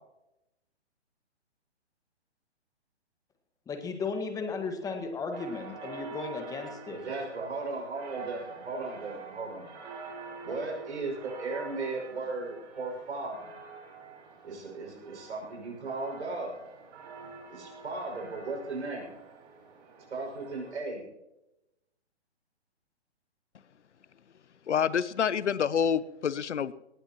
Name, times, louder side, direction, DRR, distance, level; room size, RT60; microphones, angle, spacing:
voice 1, 3.7-7.0, left 4 dB, 10° left, 5 dB, 1.5 m, -35 dB
sound 1, 5.3-20.8, right 4 dB, 40° right, 5.4 m, -47 dB
voice 2, 6.9-9.7 10.4-13.5 14.4-16.6 17.2-19.1 20.1-21.0, right 3 dB, 75° right, 1 dB, 6.1 m, -36 dB
voice 3, 24.7-26.7, left 7 dB, 85° left, 17 dB, 0.8 m, -27 dB
19.5 x 18.5 x 3.0 m, 0.92 s
hypercardioid pair, 145°, 34 cm